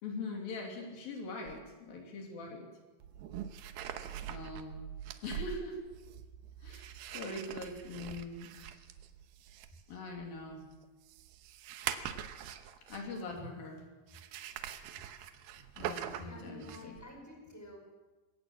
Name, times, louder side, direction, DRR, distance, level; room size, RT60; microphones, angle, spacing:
voice 1, 0.0-2.7 4.3-4.8 5.2-5.8 6.6-8.5 9.9-10.7 12.9-13.8 15.8-16.9, left 2 dB, 75° left, 2 dB, 4.5 m, -42 dB
sound 1, 1.5-1.6 3.0-13.3 14.1-17.1, right 10 dB, 80° right, 2.8 m, -43 dB
voice 2, 16.2-17.8, left 2 dB, 5° left, 1 dB, 5.1 m, -50 dB
21.5 x 17.5 x 7.4 m, 1.2 s
omnidirectional pair, 4.2 m